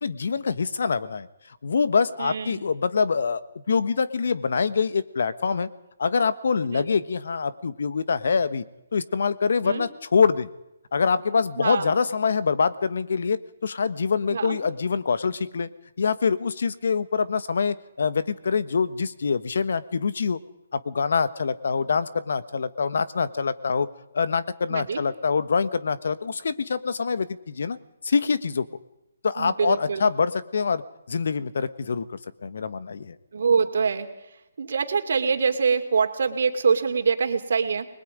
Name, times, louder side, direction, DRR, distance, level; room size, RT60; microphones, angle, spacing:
voice 1, 0.0-1.3 1.6-3.4 3.7-5.7 6.0-8.6 8.9-10.5 10.9-15.7 16.0-20.4 20.7-23.9 24.1-27.8 28.0-28.7 29.2-30.8 31.1-33.1, left 5 dB, 65° left, 14 dB, 1.2 m, -25 dB
voice 2, 2.2-2.6 6.7-6.9 9.6-9.9 11.6-11.9 14.3-14.6 24.7-25.0 29.4-30.1 33.3-34.1 34.6-37.9, right 5 dB, 60° right, 6 dB, 2.6 m, -24 dB
29.5 x 21.0 x 5.1 m, 0.88 s
figure-of-eight pair, 140°, 0 cm